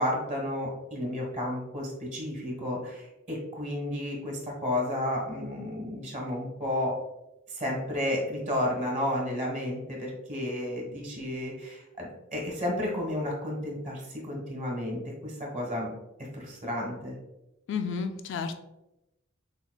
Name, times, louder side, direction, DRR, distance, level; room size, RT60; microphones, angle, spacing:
voice 1, 0.0-6.9 7.5-15.9 16.3-17.1, left 1 dB, 40° right, -2 dB, 1.3 m, -32 dB
voice 2, 17.7-18.5, left 5 dB, 60° left, 6 dB, 0.4 m, -31 dB
6.8 x 2.3 x 2.2 m, 0.94 s
head